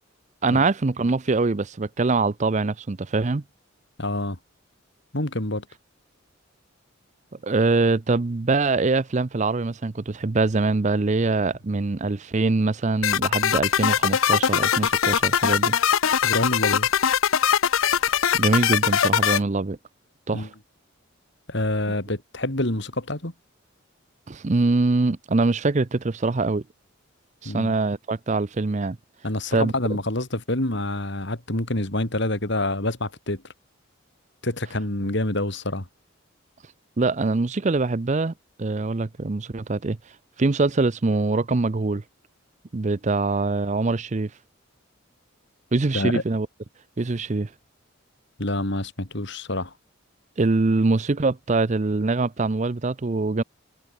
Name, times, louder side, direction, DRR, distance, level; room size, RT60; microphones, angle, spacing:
voice 1, 0.4-3.4 7.4-15.8 18.0-19.8 20.3-20.5 24.3-26.6 27.4-29.0 29.5-29.7 37.0-38.3 38.6-40.0 40.4-42.0 42.7-44.3 45.7-46.5 47.0-47.5 50.4-53.4, right 3 dB, 35° right, 0.5 m, -23 dB
voice 2, 4.0-4.4 5.1-5.6 16.2-16.9 20.3-20.5 21.5-23.3 27.4-27.7 29.2-33.4 34.4-35.9 45.9-46.2 48.4-49.7, left 1 dB, 55° left, 3.4 m, -27 dB
sound 1, 13.0-19.4, left 8 dB, 75° left, 0.7 m, -21 dB
head